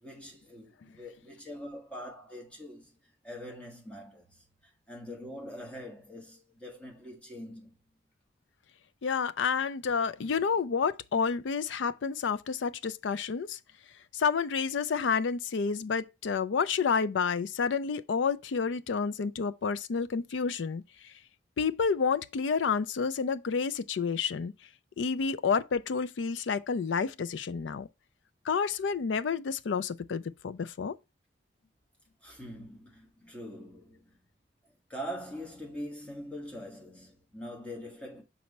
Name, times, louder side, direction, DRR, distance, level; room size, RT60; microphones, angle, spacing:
voice 1, 0.0-3.0 3.2-7.8 32.2-34.2 34.9-38.2, equal, 5° left, 1.5 m, -43 dB
voice 2, 9.0-13.6 14.1-21.1 21.6-24.5 25.0-27.9 28.5-31.0, left 5 dB, 80° left, 0.4 m, -29 dB
5.8 x 4.2 x 4.2 m
head